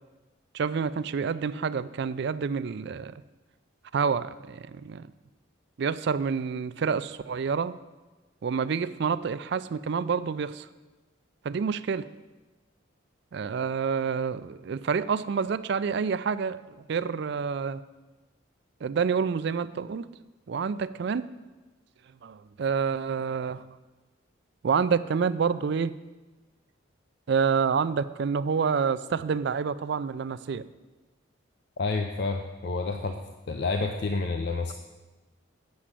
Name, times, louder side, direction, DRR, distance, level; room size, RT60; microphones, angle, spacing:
voice 1, 0.5-3.1 3.9-5.1 5.8-7.8 8.4-10.7 11.4-12.1 13.3-17.8 18.8-20.1 20.5-21.3 22.2-23.6 24.6-25.9 27.3-30.6, right 6 dB, 55° right, 15 dB, 0.3 m, -28 dB
voice 2, 31.8-33.2 33.5-34.7, left 3 dB, 55° left, 5 dB, 0.5 m, -29 dB
8.4 x 6.2 x 7.3 m, 1.2 s
head